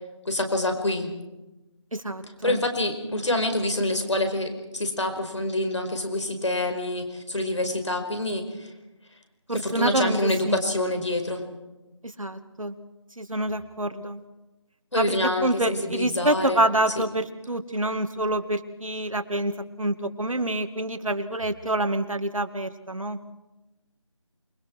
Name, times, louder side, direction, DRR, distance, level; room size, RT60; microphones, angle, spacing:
voice 1, 0.2-1.1 2.4-8.7 9.5-11.4 14.9-16.6, left 1 dB, 60° left, 6 dB, 5.1 m, -26 dB
voice 2, 1.9-2.6 9.5-10.6 12.0-12.8 13.2-14.2 15.0-23.2, right 1 dB, 80° right, 8 dB, 2.3 m, -27 dB
28.0 x 22.5 x 4.7 m, 1.0 s
figure-of-eight pair, 170°, 17 cm